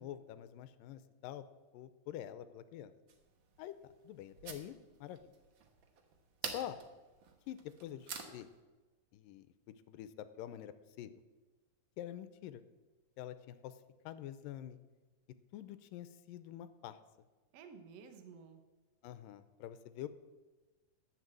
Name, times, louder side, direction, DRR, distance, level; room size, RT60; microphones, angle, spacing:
voice 1, 0.0-1.5 1.7-2.9 3.6-4.8 5.0-5.2 6.4-6.8 7.5-8.5 9.1-11.1 12.0-12.6 13.2-13.8 14.0-14.8 15.5-17.0 19.0-20.1, left 11 dB, 90° left, 12 dB, 2.3 m, -46 dB
sound 1, 3.1-8.6, right 5 dB, 85° right, 1.0 m, -49 dB
voice 2, 17.5-18.6, right 6 dB, 65° right, 7 dB, 1.8 m, -53 dB
11.0 x 8.2 x 7.6 m, 1.2 s
omnidirectional pair, 3.9 m